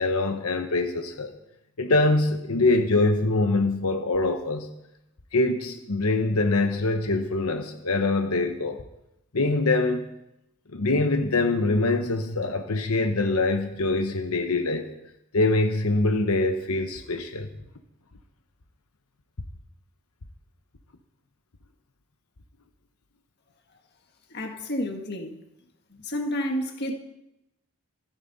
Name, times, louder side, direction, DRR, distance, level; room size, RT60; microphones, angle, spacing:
voice 1, 0.0-1.3 1.8-4.7 5.3-8.8 9.3-10.1 10.7-14.9 15.3-17.5, left 2 dB, 80° left, 1.0 m, -24 dB
voice 2, 24.3-25.3 26.0-26.9, equal, 45° left, 1.6 m, -30 dB
25.5 x 9.2 x 4.1 m
head